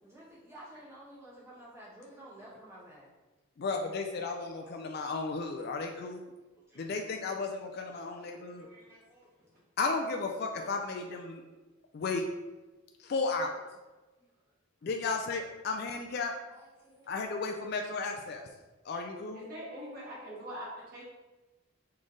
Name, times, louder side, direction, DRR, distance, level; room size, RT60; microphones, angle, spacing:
voice 1, 0.0-3.1 4.3-5.9 6.7-6.9 7.9-9.3 11.0-11.4 14.2-14.5 16.5-17.1, right 1 dB, 10° right, -7 dB, 1.0 m, -54 dB
voice 2, 3.6-6.3 6.8-8.7 9.8-11.4 11.9-12.2 13.0-13.6 14.8-16.3 17.1-18.4 18.8-19.4, left 4 dB, 45° left, 3 dB, 0.3 m, -34 dB
voice 3, 19.3-21.0, equal, 45° right, -6 dB, 1.5 m, -42 dB
4.1 x 3.2 x 3.7 m, 1.2 s
head